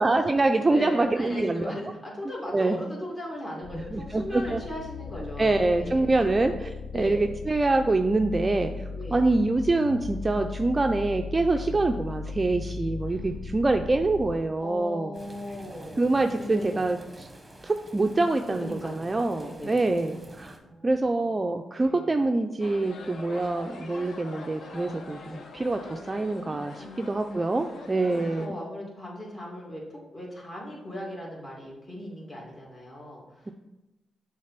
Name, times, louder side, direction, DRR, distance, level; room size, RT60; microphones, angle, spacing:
voice 1, 0.0-1.7 2.5-2.8 3.9-4.6 5.4-6.5 6.9-15.1 16.0-17.0 17.6-20.5 20.8-28.6, right 2 dB, 25° right, 5 dB, 0.4 m, -25 dB
voice 2, 0.7-6.4 6.9-7.2 8.9-9.3 11.6-11.9 13.1-13.3 14.6-16.8 18.6-20.0 20.6-21.3 21.7-22.1 26.8-33.5, left 1 dB, 35° left, -4 dB, 2.5 m, -38 dB
sound 1, 3.6-14.4, left 4 dB, 90° left, 0.4 m, -37 dB
sound 2, 15.1-20.6, right 1 dB, 10° right, 1.0 m, -48 dB
sound 3, 22.6-28.5, left 3 dB, 65° left, 0.8 m, -44 dB
6.4 x 3.4 x 5.8 m, 0.99 s
cardioid pair, 90°, 0 cm